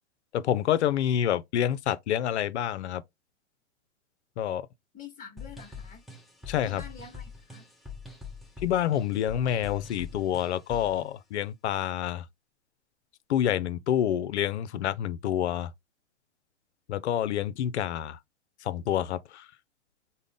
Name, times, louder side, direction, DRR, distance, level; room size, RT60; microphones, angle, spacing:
voice 1, 0.3-3.0 4.4-4.7 6.5-6.8 8.6-12.3 13.3-15.7 16.9-18.2 18.6-19.5, left 10 dB, 70° left, 0.5 m, -28 dB
voice 2, 4.9-6.0 6.6-7.7, left 6 dB, 20° left, 1.0 m, -46 dB
sound 1, 5.4-11.0, left 4 dB, ahead, 0.5 m, -44 dB
3.7 x 2.1 x 3.5 m
hypercardioid pair, 115°, 36 cm